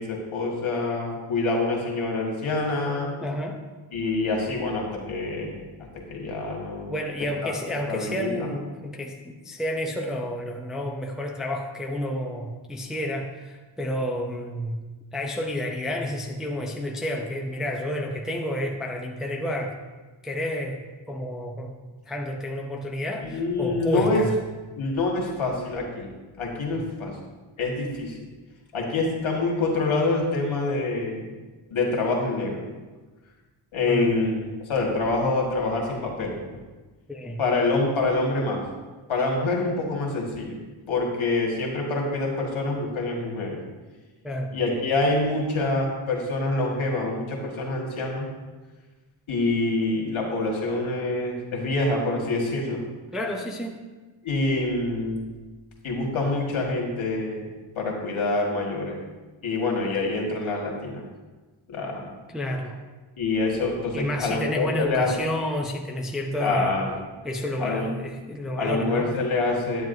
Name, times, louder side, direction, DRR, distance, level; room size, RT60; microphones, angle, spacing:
voice 1, 0.0-3.1 3.9-5.6 6.1-6.9 7.4-7.5 7.9-8.5 23.2-24.2 24.8-26.1 26.4-27.1 27.6-28.2 28.7-31.3 31.7-32.6 33.7-36.4 37.4-38.6 39.1-40.6 40.9-43.6 44.5-48.3 49.3-52.8 54.2-55.3 55.8-57.4 57.8-59.0 59.4-61.0 61.7-62.1 63.2-65.1 66.4-67.0 67.6-67.9 68.6-69.8, left 2 dB, 75° left, -1 dB, 1.8 m, -26 dB
voice 2, 3.2-3.6 6.9-14.8 15.1-19.8 20.2-20.8 21.1-24.4 26.7-26.9 33.9-34.1 37.1-37.4 44.2-44.5 53.1-53.8 62.3-62.8 63.9-66.8 67.2-69.1, left 1 dB, ahead, 1 dB, 0.5 m, -30 dB
9.7 x 9.1 x 2.6 m, 1.3 s
wide cardioid pair, 180°, 49 cm